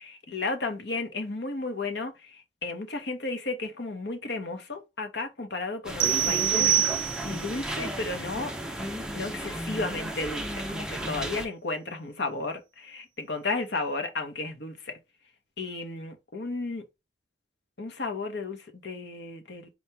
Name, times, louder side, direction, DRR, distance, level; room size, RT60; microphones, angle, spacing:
voice 1, 0.0-8.5 9.1-15.0 15.6-16.9 17.8-19.7, left 3 dB, 65° left, 1.0 m, -34 dB
sound 1, 5.8-11.4, right 1 dB, 5° right, 0.5 m, -34 dB
sound 2, 6.0-7.5, right 11 dB, 85° right, 0.4 m, -25 dB
4.3 x 2.9 x 3.3 m
head